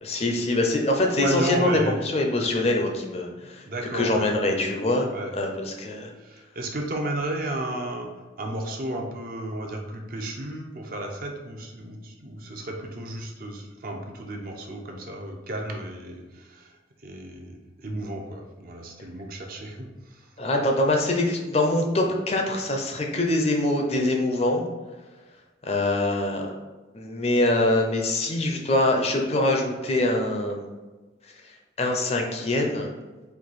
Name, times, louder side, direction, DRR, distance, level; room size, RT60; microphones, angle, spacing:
voice 1, 0.0-3.6 3.9-5.1 5.3-6.1 20.4-24.6 25.6-26.5 26.9-30.7 31.8-32.9, left 1 dB, 35° left, 2 dB, 0.5 m, -24 dB
voice 2, 1.2-2.0 3.7-4.3 5.1-5.4 6.2-8.1 8.4-16.7 17.0-20.2, right 1 dB, 50° right, 2 dB, 0.6 m, -33 dB
4.5 x 2.7 x 4.0 m, 1.2 s
head